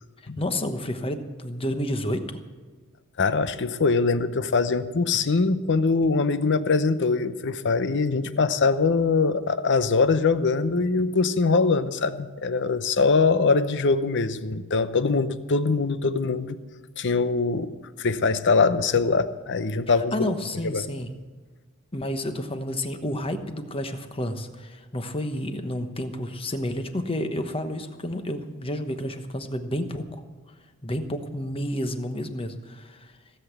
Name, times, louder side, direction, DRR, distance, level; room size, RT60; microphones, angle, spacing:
voice 1, 0.4-2.3 20.1-21.1 21.9-30.2 30.8-33.1, left 1 dB, 25° left, 8 dB, 1.1 m, -30 dB
voice 2, 3.2-16.6 17.0-17.7 18.0-20.3 20.7-20.9, left 4 dB, 55° left, 13 dB, 0.8 m, -23 dB
17.0 x 8.1 x 8.2 m, 1.4 s
head